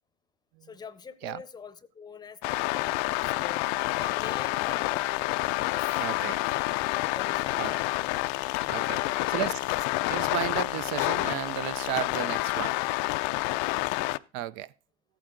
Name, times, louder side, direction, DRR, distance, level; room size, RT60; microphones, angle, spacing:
voice 1, 0.6-3.7 4.0-5.1 5.7-5.9 6.2-6.6 7.0-8.2 8.9-9.4 13.5-13.8, left 6 dB, 20° left, 0.7 m, -45 dB
sound 1, 2.4-14.2, left 20 dB, 65° left, 0.4 m, -28 dB
voice 2, 6.0-6.4 7.6-7.7 8.7-9.6 10.1-12.8 14.3-14.7, right 13 dB, 65° right, 0.5 m, -34 dB
14.0 x 9.0 x 3.8 m
supercardioid pair, 115°, 20 cm